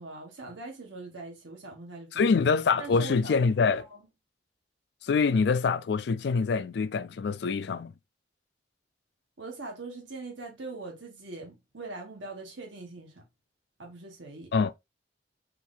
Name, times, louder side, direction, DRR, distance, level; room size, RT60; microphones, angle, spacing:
voice 1, 0.0-2.2 2.8-4.1 9.4-13.2 13.8-14.5, right 3 dB, 85° right, 1.4 m, -42 dB
voice 2, 2.1-3.9 5.0-7.9 14.5-14.7, left 5 dB, 65° left, 0.3 m, -25 dB
4.5 x 2.6 x 3.8 m
head